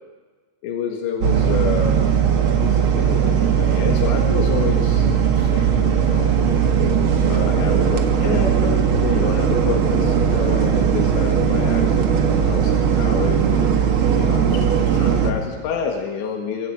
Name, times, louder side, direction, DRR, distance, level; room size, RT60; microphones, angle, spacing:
voice 1, 0.6-2.0 2.6-6.3 7.3-13.7 14.2-16.7, left 6 dB, 85° left, 1 dB, 4.1 m, -29 dB
sound 1, 1.2-15.3, right 7 dB, 75° right, 1.2 m, -18 dB
25.5 x 23.5 x 4.9 m, 1.4 s
omnidirectional pair, 5.0 m